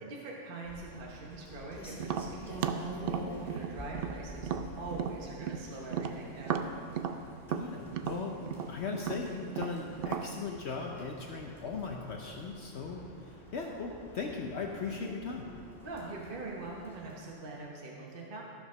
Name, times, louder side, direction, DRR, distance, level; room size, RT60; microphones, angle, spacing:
voice 1, 0.0-2.6 3.0-6.7 15.8-18.4, right 2 dB, 45° right, -2 dB, 1.2 m, -43 dB
Rain, 0.6-17.2, right 1 dB, ahead, 2.3 m, -49 dB
Tap, 2.0-5.6 5.9-10.3, right 7 dB, 60° right, 0.6 m, -35 dB
voice 2, 7.5-15.5, left 4 dB, 60° left, 0 dB, 1.0 m, -38 dB
14.0 x 5.1 x 6.1 m, 2.5 s
omnidirectional pair, 1.3 m